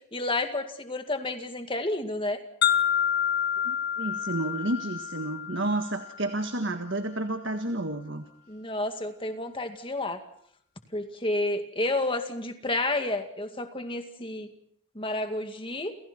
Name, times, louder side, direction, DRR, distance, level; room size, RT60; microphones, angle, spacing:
voice 1, 0.1-2.4 8.5-10.2 10.9-14.5 14.9-15.9, left 2 dB, 25° left, 6 dB, 2.2 m, -30 dB
sound 1, 2.6-6.6, left 9 dB, 50° left, 1.5 m, -28 dB
voice 2, 3.6-8.2, right 2 dB, 55° right, 7 dB, 1.7 m, -31 dB
30.0 x 28.5 x 4.5 m, 0.66 s
head